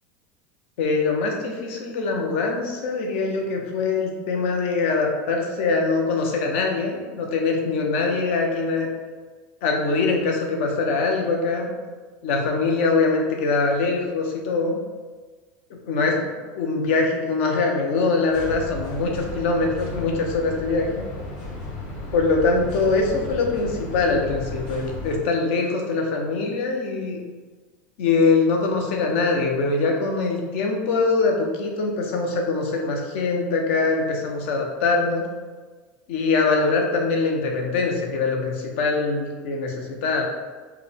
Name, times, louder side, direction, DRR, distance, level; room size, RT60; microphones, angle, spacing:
voice 1, 0.8-8.9 9.6-11.7 12.2-14.8 15.7-16.2 16.5-21.1 22.1-27.2 28.0-35.3 36.1-40.2, left 3 dB, 75° left, 1 dB, 0.8 m, -23 dB
sound 1, 18.3-25.2, left 2 dB, 60° left, 1.3 m, -34 dB
4.8 x 2.2 x 3.4 m, 1.4 s
supercardioid pair, 155°, 7 cm